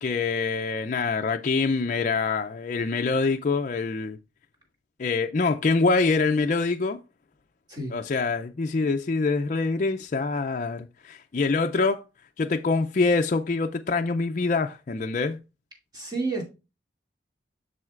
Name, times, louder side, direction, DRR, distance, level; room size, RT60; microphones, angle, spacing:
voice 1, 0.0-4.2 5.0-7.0 7.9-12.0 12.4-15.4, left 4 dB, 40° left, 0.4 m, -25 dB
voice 2, 15.9-16.4, right 3 dB, 20° right, 2.5 m, -30 dB
7.5 x 6.3 x 2.4 m
head